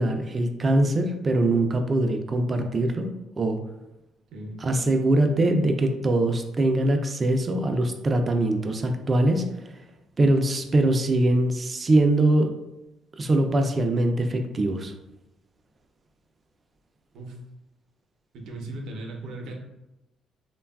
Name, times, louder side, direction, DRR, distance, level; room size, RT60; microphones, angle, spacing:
voice 1, 0.0-3.6 4.6-9.7 10.2-12.5 13.2-14.9, right 1 dB, 30° right, 5 dB, 0.3 m, -22 dB
voice 2, 4.3-4.6 17.1-17.4 18.3-19.5, right 2 dB, 80° right, 1 dB, 0.6 m, -37 dB
3.2 x 2.2 x 2.3 m, 0.96 s
cardioid pair, 110°, 0 cm